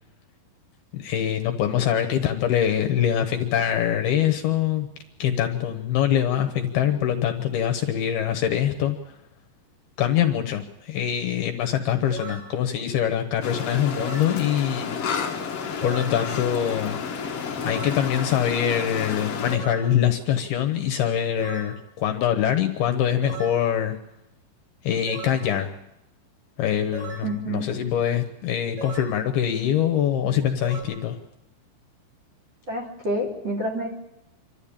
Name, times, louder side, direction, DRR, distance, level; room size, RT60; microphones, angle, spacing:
voice 1, 0.9-4.9 5.2-9.1 10.0-15.0 15.8-17.0 17.6-24.0 24.8-25.8 26.6-31.2, left 10 dB, 70° left, 5 dB, 2.7 m, -24 dB
sound 1, 12.1-12.5 14.0-14.3 15.8-16.2 17.7-18.0 19.5-19.9 21.4-21.8 23.2-23.6 25.1-25.5 26.9-27.3 28.8-29.2 30.6-30.8, right 3 dB, 75° right, 7.9 m, -36 dB
sound 2, 13.4-19.6, left 6 dB, 55° left, 1.7 m, -31 dB
voice 2, 27.2-27.7 32.7-33.9, right 1 dB, 30° right, 0 dB, 3.1 m, -28 dB
27.5 x 13.0 x 8.7 m, 0.94 s
omnidirectional pair, 5.2 m